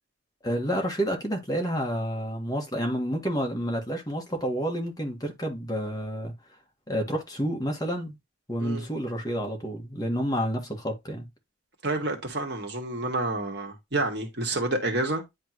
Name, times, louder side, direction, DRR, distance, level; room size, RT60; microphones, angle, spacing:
voice 1, 0.4-6.3 6.9-8.1 8.5-11.2, equal, 20° left, 1.7 m, -29 dB
voice 2, 11.8-15.2, right 2 dB, 55° right, 1.9 m, -29 dB
10.5 x 3.5 x 3.0 m
head